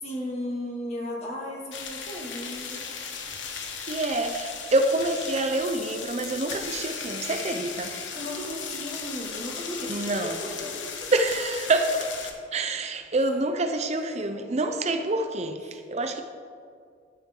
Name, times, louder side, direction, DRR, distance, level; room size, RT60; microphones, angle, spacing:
voice 1, 0.0-2.9 8.1-11.1 13.9-14.3 15.7-15.8, left 1 dB, 35° left, 2.1 m, -36 dB
sound 1, 1.7-12.3, left 6 dB, 90° left, 1.2 m, -36 dB
voice 2, 3.6-8.0 9.9-10.4 11.1-12.1 12.5-16.2, right 2 dB, 35° right, 0.6 m, -27 dB
12.5 x 9.7 x 3.8 m
head